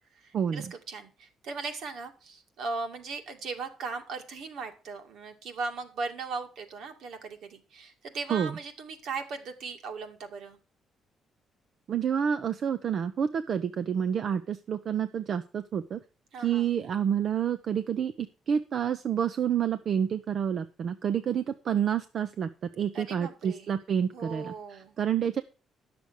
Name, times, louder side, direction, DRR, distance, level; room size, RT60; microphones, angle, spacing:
voice 1, 0.1-10.6 16.3-16.7 22.9-23.7 24.1-24.9, right 4 dB, 75° right, 5 dB, 2.2 m, -38 dB
voice 2, 11.9-16.0 16.4-22.5 22.8-25.4, right 8 dB, 60° right, 10 dB, 0.7 m, -29 dB
10.5 x 6.9 x 6.3 m, 0.34 s
cardioid pair, 90°, 0 cm